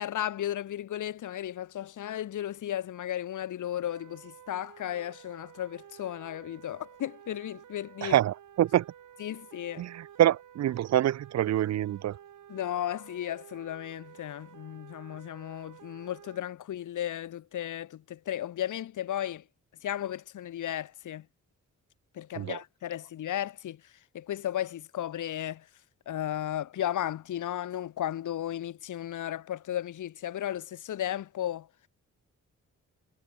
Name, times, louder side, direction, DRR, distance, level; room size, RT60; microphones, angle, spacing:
voice 1, 0.0-8.2 9.2-9.8 12.5-19.4 19.8-21.2 22.1-23.8 24.1-25.6 26.1-31.7, left 11 dB, 80° left, 1.1 m, -34 dB
sound 1, 3.9-16.4, right 9 dB, 80° right, 3.8 m, -52 dB
voice 2, 8.0-8.9 9.8-12.2 22.3-22.6, right 12 dB, 60° right, 0.5 m, -26 dB
wide cardioid pair, 155°, 30 cm